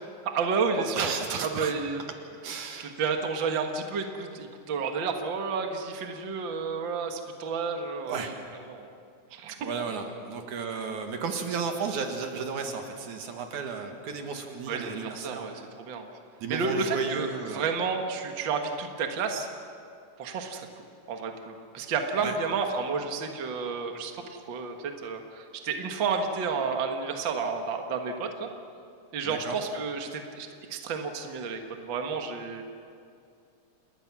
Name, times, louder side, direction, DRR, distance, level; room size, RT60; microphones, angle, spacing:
voice 1, 0.2-1.1 1.5-2.0 2.8-8.3 8.7-8.9 9.3-9.9 14.7-16.1 16.5-19.5 20.2-28.5 29.1-32.6, right 5 dB, 45° right, 4 dB, 2.0 m, -31 dB
voice 2, 0.9-1.7 2.4-3.0 8.1-8.4 9.6-15.5 16.4-17.7 22.2-22.4 29.2-29.6, right 5 dB, 75° right, 4 dB, 3.2 m, -33 dB
28.5 x 20.5 x 6.1 m, 2.4 s
omnidirectional pair, 3.5 m